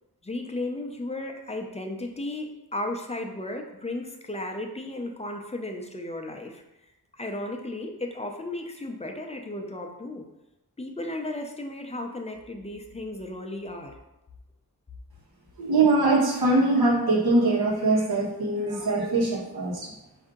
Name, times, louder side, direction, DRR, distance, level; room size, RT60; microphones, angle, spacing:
voice 1, 0.2-6.6 7.1-10.3 10.8-13.9, left 1 dB, 20° left, 3 dB, 0.4 m, -34 dB
voice 2, 15.6-19.9, right 2 dB, 75° right, -2 dB, 1.2 m, -22 dB
4.7 x 2.7 x 3.6 m, 0.93 s
wide cardioid pair, 120°, 37 cm